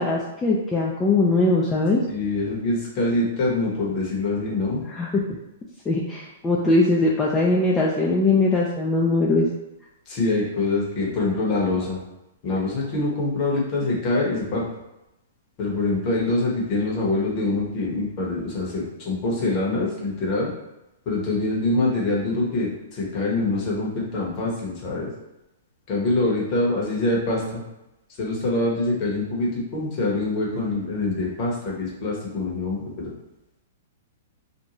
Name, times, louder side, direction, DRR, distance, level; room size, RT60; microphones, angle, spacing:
voice 1, 0.0-2.0 4.9-5.1 5.9-9.5, left 2 dB, 15° left, -4 dB, 0.3 m, -21 dB
voice 2, 2.1-4.8 10.1-12.0 12.4-14.7 15.6-20.5 21.1-25.1 25.9-27.6 28.2-33.1, left 2 dB, 40° left, -4 dB, 1.0 m, -25 dB
2.6 x 2.2 x 2.9 m, 0.95 s
hypercardioid pair, 125°, 0 cm